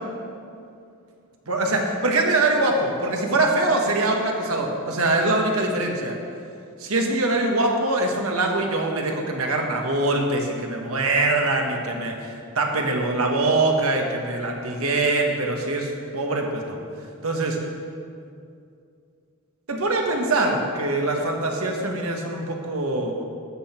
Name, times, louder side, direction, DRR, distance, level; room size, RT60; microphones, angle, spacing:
voice 1, 1.5-6.2 6.8-16.8 17.2-17.6 19.7-23.1, right 2 dB, 80° right, 1 dB, 1.5 m, -23 dB
13.0 x 8.1 x 4.4 m, 2.4 s
head